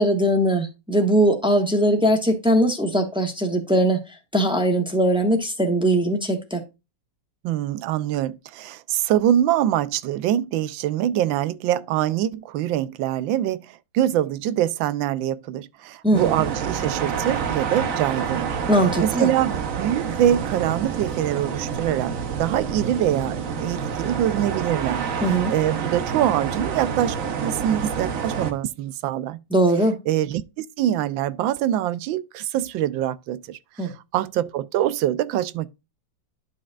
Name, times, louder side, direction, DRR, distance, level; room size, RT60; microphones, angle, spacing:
voice 1, 0.0-4.0 4.3-6.6 16.0-16.4 18.7-19.3 25.2-25.5 29.5-30.0 33.8-33.9, right 1 dB, 5° right, 1.1 m, -20 dB
voice 2, 7.4-18.6 19.0-27.2 27.4-29.4 30.1-35.7, right 11 dB, 80° right, 1.3 m, -24 dB
sound 1, 16.1-28.5, right 6 dB, 50° right, 1.1 m, -28 dB
11.5 x 5.3 x 2.4 m
omnidirectional pair, 2.1 m